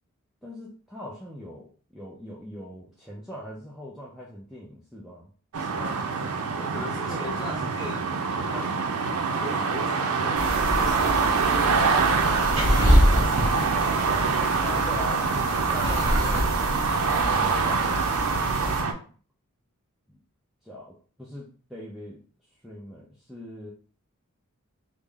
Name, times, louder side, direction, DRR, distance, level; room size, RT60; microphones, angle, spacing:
voice 1, 0.4-5.3 6.6-7.4 7.6-7.8 14.6-16.9 17.2-19.0 20.1-20.2 20.6-22.2 22.6-23.7, left 1 dB, ahead, -5 dB, 0.4 m, -41 dB
sound 1, 5.5-18.9, right 5 dB, 85° right, 0.4 m, -25 dB
voice 2, 5.6-6.1 6.7-8.8 9.4-14.1, left 1 dB, 20° left, -3 dB, 0.9 m, -40 dB
sound 2, 10.4-18.8, equal, 60° right, 1.0 m, -26 dB
3.5 x 2.0 x 3.3 m, 0.42 s
head